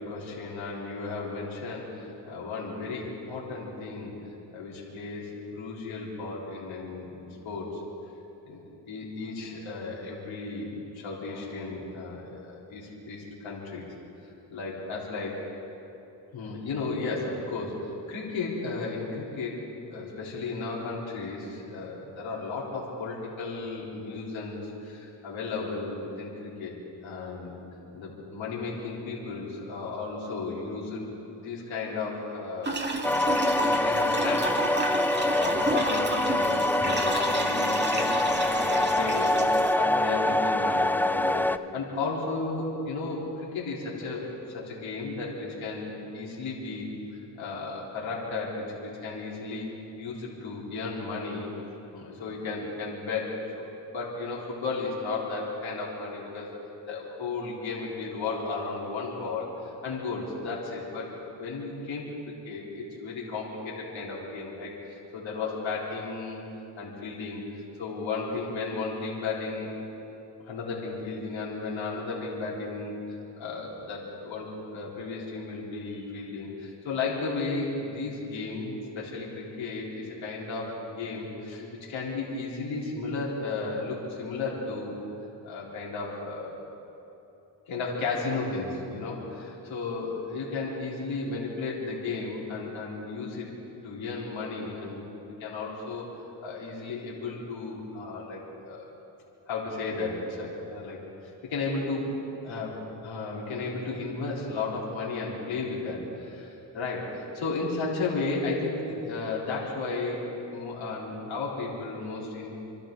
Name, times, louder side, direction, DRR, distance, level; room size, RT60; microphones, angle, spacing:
voice 1, 0.0-4.1 4.5-7.8 8.5-8.6 8.9-13.9 14.5-15.4 16.3-19.6 19.9-26.7 27.0-27.6 27.9-31.1 31.4-32.8 33.2-41.5 41.7-46.9 47.4-51.5 51.9-56.5 56.9-61.1 61.4-66.4 66.8-67.4 67.8-69.7 70.5-72.9 73.4-85.0 85.4-86.5 87.7-93.5 93.8-95.0 95.4-96.1 96.4-98.8 99.5-101.0 101.5-102.1 102.4-110.2 110.5-112.5, left 3 dB, 85° left, -5 dB, 3.8 m, -34 dB
sound 1, 32.6-39.8, right 1 dB, 25° right, 2.1 m, -31 dB
sound 2, 33.0-41.6, left 1 dB, 5° left, 0.6 m, -25 dB
29.5 x 12.0 x 3.9 m, 3.0 s
cardioid pair, 55°, 45 cm